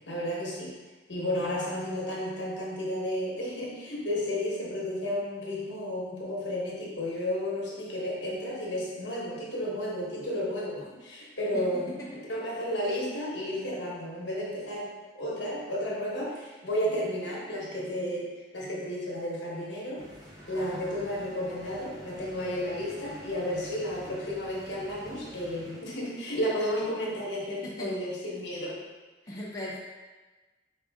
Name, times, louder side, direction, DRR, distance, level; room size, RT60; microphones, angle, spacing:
voice 1, 0.1-0.7 1.1-11.9 12.3-18.3 18.5-20.0 20.5-28.8, equal, 75° left, -5 dB, 1.1 m, -32 dB
sound 1, 20.0-25.8, equal, 20° right, 0.7 m, -48 dB
voice 2, 27.6-28.0 29.3-29.8, left 1 dB, 20° left, -5 dB, 0.6 m, -38 dB
4.9 x 2.6 x 3.5 m, 1.2 s
head